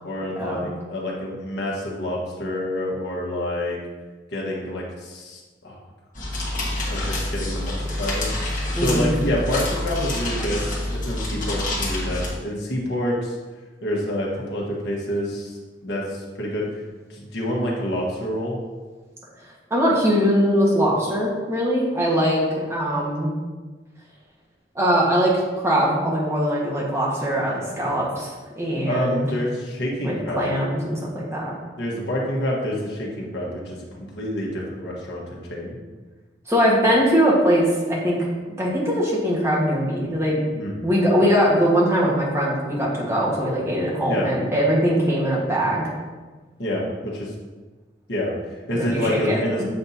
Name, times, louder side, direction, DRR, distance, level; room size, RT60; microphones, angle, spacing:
voice 1, 0.0-3.8 4.3-5.8 6.9-8.3 8.7-10.6 10.9-13.4 13.8-15.5 15.8-16.6 17.1-18.6 27.8-27.9 28.8-30.5 31.8-33.8 34.1-35.7 40.5-40.7 44.1-44.3 46.6-47.3 48.1-48.3 48.7-49.6, left 1 dB, 70° left, -3 dB, 1.4 m, -27 dB
sound 1, 6.1-12.3, left 1 dB, 45° left, 1.6 m, -27 dB
voice 2, 8.7-9.1 19.7-23.3 24.7-28.3 28.6-29.3 30.0-31.5 36.5-38.2 38.5-40.3 40.8-45.8 48.7-49.4, equal, 15° right, -5 dB, 1.4 m, -21 dB
7.9 x 5.5 x 2.8 m, 1.3 s
head